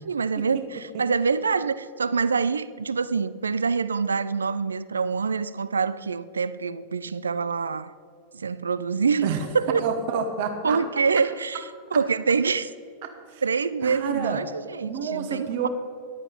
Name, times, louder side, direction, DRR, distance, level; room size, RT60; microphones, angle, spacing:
voice 1, 0.0-7.9 8.3-9.9 10.6-11.6 11.9-12.7 13.4-15.7, right 5 dB, 75° right, 0.4 m, -25 dB
voice 2, 9.8-10.8 13.0-13.4 13.8-14.4 14.8-15.7, right 6 dB, 50° right, 1.1 m, -29 dB
14.0 x 11.0 x 3.9 m
figure-of-eight pair, 90°, 0 cm